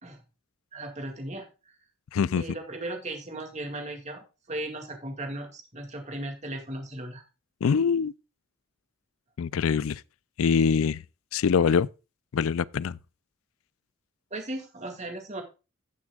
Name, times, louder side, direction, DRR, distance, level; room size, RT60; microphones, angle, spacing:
voice 1, 0.7-1.5 2.3-7.2 14.3-15.4, right 1 dB, 35° right, 2.2 m, -36 dB
voice 2, 2.1-2.4 7.6-8.1 9.4-10.0 10.4-11.0 11.3-11.9 12.3-13.0, left 6 dB, 80° left, 0.4 m, -24 dB
16.0 x 6.2 x 2.3 m
head